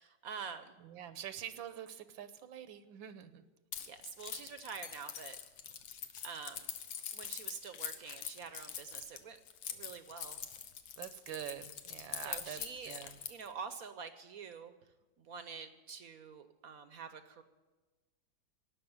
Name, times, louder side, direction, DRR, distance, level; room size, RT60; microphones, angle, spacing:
voice 1, 0.0-0.8 3.8-5.4 6.2-6.7 7.1-9.4 9.7-10.4 12.2-13.0 13.3-14.7 15.2-17.4, right 6 dB, 60° right, 10 dB, 1.0 m, -46 dB
voice 2, 0.8-3.4 11.0-12.6 12.9-13.1, right 10 dB, 80° right, 12 dB, 1.6 m, -45 dB
Keys jangling, 3.7-13.5, left 8 dB, 85° left, 1.7 m, -44 dB
18.0 x 6.1 x 9.4 m, 1.2 s
omnidirectional pair, 2.1 m